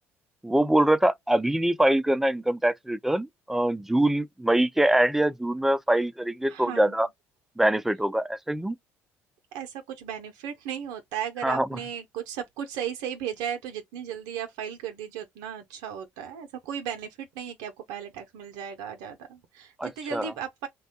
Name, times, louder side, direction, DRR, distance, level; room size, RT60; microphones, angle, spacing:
voice 1, 0.4-7.1 7.6-8.8 11.4-11.7 19.8-20.3, right 1 dB, 5° right, 0.3 m, -24 dB
voice 2, 6.5-7.0 9.5-20.7, right 8 dB, 75° right, 0.5 m, -36 dB
2.9 x 2.1 x 2.8 m
hypercardioid pair, 65°, 7 cm